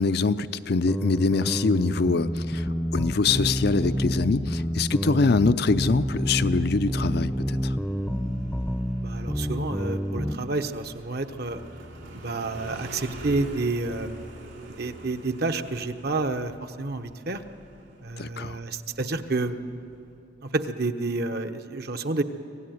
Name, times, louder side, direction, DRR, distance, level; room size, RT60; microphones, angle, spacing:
voice 1, 0.0-7.8 18.2-18.6, left 4 dB, 60° left, 12 dB, 0.6 m, -24 dB
sound 1, 0.9-10.4, equal, ahead, 0.7 m, -28 dB
Motorcycle, 5.9-20.2, right 1 dB, 85° right, 3.7 m, -45 dB
voice 2, 9.0-11.6 12.1-14.1 14.7-17.4 18.0-19.6 20.4-22.2, right 3 dB, 55° right, 8 dB, 1.1 m, -29 dB
25.5 x 16.5 x 9.4 m, 2.7 s
head